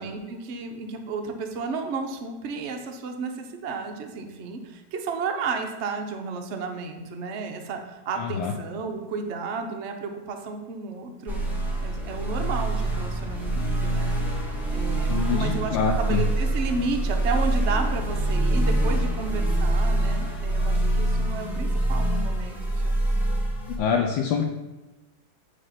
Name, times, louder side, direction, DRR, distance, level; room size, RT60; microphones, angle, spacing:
voice 1, 0.0-11.4 11.8-14.1 14.7-23.0, right 4 dB, 75° right, 4 dB, 0.6 m, -32 dB
voice 2, 8.2-8.5 15.1-16.2 23.8-24.4, left 6 dB, 75° left, 3 dB, 1.3 m, -25 dB
sound 1, 11.3-23.8, right 1 dB, ahead, 0.9 m, -25 dB
8.7 x 3.4 x 5.6 m, 1.1 s
omnidirectional pair, 2.3 m